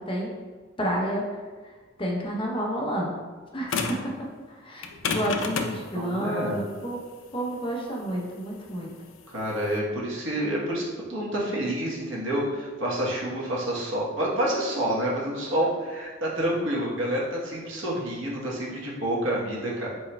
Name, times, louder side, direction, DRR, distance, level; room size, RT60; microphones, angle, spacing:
voice 1, 0.8-1.3 2.0-3.2 3.5-3.7 4.5-7.0 7.3-8.9, equal, 25° left, -2 dB, 0.7 m, -30 dB
sound 1, 3.7-4.1 4.8-9.8, left 4 dB, 80° left, 0.4 m, -31 dB
voice 2, 5.9-6.6 9.3-19.9, right 1 dB, 80° right, -4 dB, 1.0 m, -28 dB
4.4 x 4.4 x 2.2 m, 1.4 s
head